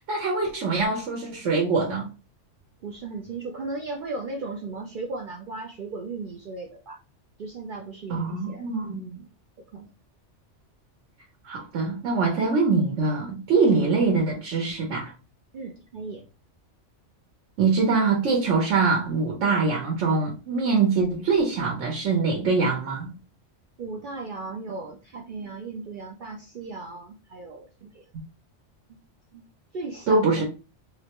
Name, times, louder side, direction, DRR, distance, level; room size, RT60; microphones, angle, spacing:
voice 1, 0.1-2.1 8.1-9.0 11.4-15.1 17.6-23.1 30.1-30.4, right 4 dB, 85° right, 1.1 m, -23 dB
voice 2, 2.8-7.0 7.4-9.3 9.7-9.9 15.5-16.2 23.8-28.0 29.3-29.4 29.7-30.4, right 3 dB, 55° right, 0.6 m, -36 dB
3.8 x 2.2 x 2.8 m
omnidirectional pair, 1.2 m